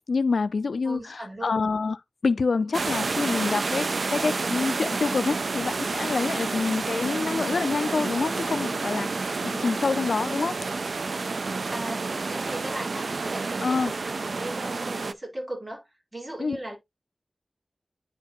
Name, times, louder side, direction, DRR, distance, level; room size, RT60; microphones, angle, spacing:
voice 1, 0.1-2.0 2.2-10.6 13.6-13.9 16.4-16.6, left 4 dB, 85° left, 0.5 m, -27 dB
voice 2, 0.8-1.6 6.4-6.6 11.7-16.8, right 1 dB, 30° right, 4.5 m, -37 dB
sound 1, 2.7-15.1, right 3 dB, 70° right, 0.4 m, -29 dB
9.9 x 4.5 x 3.0 m
wide cardioid pair, 90°, 0 cm